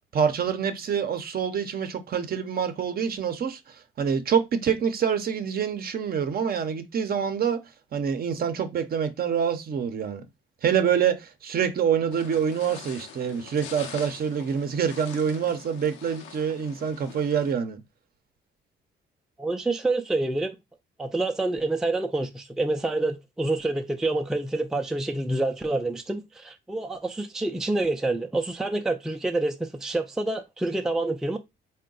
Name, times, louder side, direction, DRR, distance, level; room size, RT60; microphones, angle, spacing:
voice 1, 0.1-7.6 7.9-10.2 10.6-17.8, right 7 dB, 50° right, 0.6 m, -26 dB
sound 1, 12.1-17.5, left 7 dB, 85° left, 0.7 m, -44 dB
voice 2, 19.4-20.6 21.0-31.4, right 2 dB, ahead, 0.4 m, -27 dB
3.7 x 2.2 x 3.7 m
cardioid pair, 90°, 20 cm